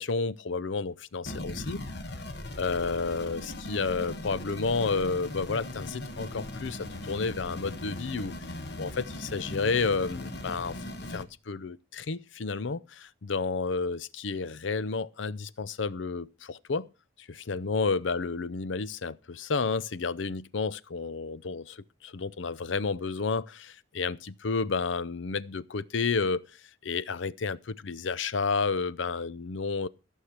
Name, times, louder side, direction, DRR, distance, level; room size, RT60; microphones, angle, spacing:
voice 1, 0.0-1.8 2.6-8.3 8.8-10.8 11.1-16.9 17.2-26.4 26.8-29.9, left 4 dB, 75° left, 0.6 m, -31 dB
sound 1, 1.2-11.2, left 1 dB, 55° left, 1.4 m, -39 dB
14.5 x 6.5 x 5.9 m
head